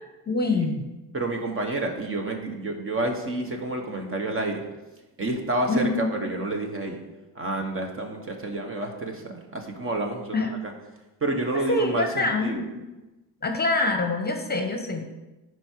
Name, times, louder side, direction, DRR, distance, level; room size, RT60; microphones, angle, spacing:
voice 1, 0.3-0.8 5.7-6.1 10.3-10.5 11.7-12.8 13.4-15.0, left 2 dB, 25° left, 5 dB, 0.9 m, -25 dB
voice 2, 1.1-4.6 5.2-7.0 7.3-10.4 10.6-10.7 11.2-12.6, right 2 dB, 30° right, 3 dB, 1.3 m, -29 dB
10.5 x 4.8 x 4.6 m, 1.1 s
cardioid pair, 115°, 40 cm